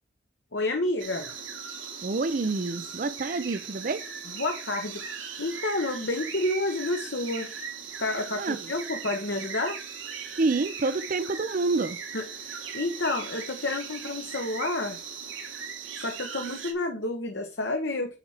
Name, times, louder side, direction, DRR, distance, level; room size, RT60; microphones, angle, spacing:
voice 1, 0.5-1.3 4.3-7.5 8.0-9.8 12.1-15.0 15.9-18.2, left 2 dB, 65° left, 1.1 m, -30 dB
sound 1, 1.0-16.7, right 6 dB, 85° right, 2.0 m, -39 dB
voice 2, 2.0-4.0 8.4-8.6 10.4-12.0, right 3 dB, 45° right, 0.5 m, -27 dB
9.9 x 4.3 x 4.8 m
head